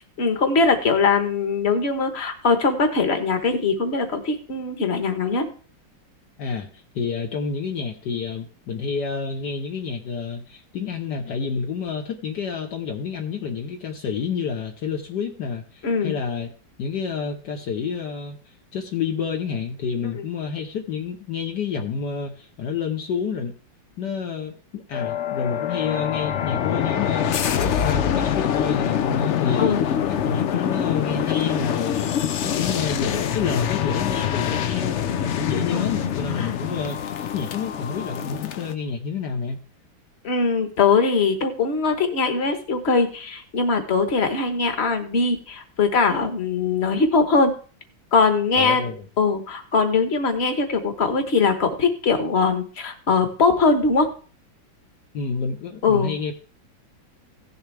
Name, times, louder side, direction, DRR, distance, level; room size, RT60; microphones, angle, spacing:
voice 1, 0.2-5.5 15.8-16.1 29.6-29.8 35.7-35.9 36.4-36.5 40.2-47.5 48.1-48.8 49.2-54.1 55.8-56.1, left 4 dB, 35° left, 7 dB, 1.4 m, -21 dB
voice 2, 6.4-16.5 16.8-23.5 24.0-27.3 27.6-39.6 48.6-49.0 55.1-56.3, left 6 dB, 65° left, 3 dB, 1.5 m, -29 dB
sound 1, 24.9-38.7, left 9 dB, 90° left, 0.6 m, -25 dB
16.0 x 7.1 x 3.3 m, 0.40 s
omnidirectional pair, 2.1 m